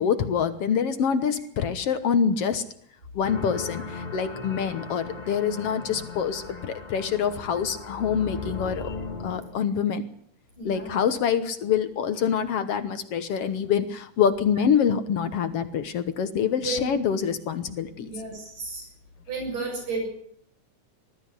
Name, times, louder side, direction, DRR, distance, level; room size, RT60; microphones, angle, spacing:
voice 1, 0.0-2.6 3.2-9.0 9.2-10.1 10.7-18.1, left 7 dB, 60° left, 11 dB, 1.9 m, -25 dB
sound 1, 3.2-9.5, left 3 dB, 20° left, 1.1 m, -38 dB
voice 2, 10.6-11.0 16.6-16.9 18.0-18.9 19.3-20.1, right 3 dB, 60° right, 1 dB, 8.6 m, -32 dB
21.0 x 13.5 x 9.7 m, 0.67 s
omnidirectional pair, 3.4 m